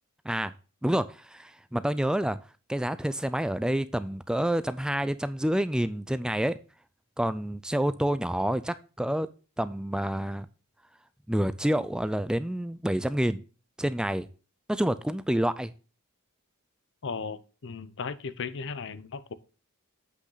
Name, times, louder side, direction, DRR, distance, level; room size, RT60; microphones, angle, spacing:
voice 1, 0.8-2.4 2.7-6.6 7.2-9.3 9.6-10.5 11.3-13.4 13.8-14.3 14.7-15.7, right 1 dB, 5° right, 0.3 m, -28 dB
voice 2, 17.0-19.3, left 5 dB, 60° left, 0.7 m, -36 dB
7.9 x 5.9 x 3.9 m
head